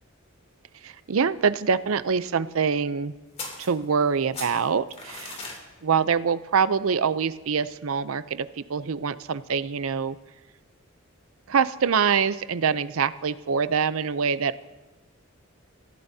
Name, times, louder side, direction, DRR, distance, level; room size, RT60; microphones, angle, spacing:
voice 1, 0.8-3.1 3.6-5.4 5.8-10.2 11.5-14.6, right 6 dB, 75° right, 14 dB, 0.6 m, -25 dB
sound 1, 3.4-4.1 4.3-5.6, left 3 dB, 30° left, 3.0 m, -38 dB
28.0 x 15.5 x 2.8 m, 1.2 s
head